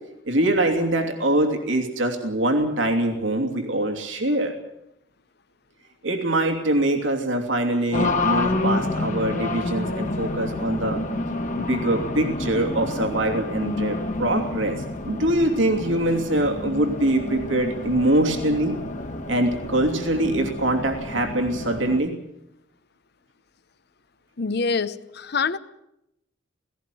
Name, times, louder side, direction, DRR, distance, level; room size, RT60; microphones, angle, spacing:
voice 1, 0.2-4.5 6.0-11.0 11.6-18.8 19.3-22.1, right 1 dB, 85° right, 4 dB, 2.9 m, -23 dB
Race car auto racing, 7.9-22.0, left 2 dB, 40° left, 1.7 m, -29 dB
voice 2, 24.4-25.6, left 4 dB, 60° left, 14 dB, 0.9 m, -25 dB
17.5 x 17.5 x 9.3 m, 0.83 s
head